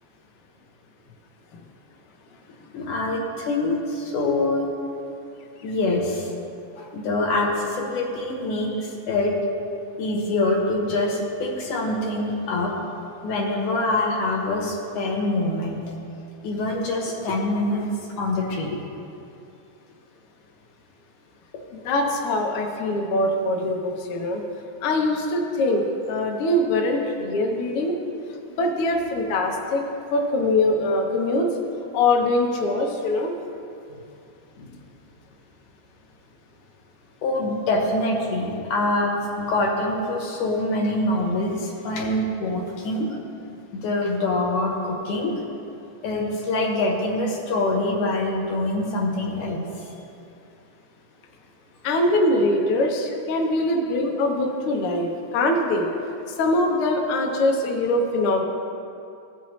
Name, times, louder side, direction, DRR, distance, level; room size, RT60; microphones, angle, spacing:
voice 1, 2.7-4.7 5.6-6.3 6.8-9.4 10.0-12.7 13.2-15.8 16.4-17.9 18.1-18.8 33.9-34.0 34.6-34.7 37.2-43.1 43.7-45.3 46.0-49.6, left 2 dB, 85° left, -1 dB, 2.7 m, -25 dB
voice 2, 21.7-24.4 24.8-27.9 28.6-29.8 30.1-31.5 31.9-33.3 51.8-55.9 56.4-58.4, left 2 dB, 65° left, 1 dB, 1.4 m, -23 dB
16.0 x 5.7 x 3.1 m, 2.6 s
omnidirectional pair, 3.4 m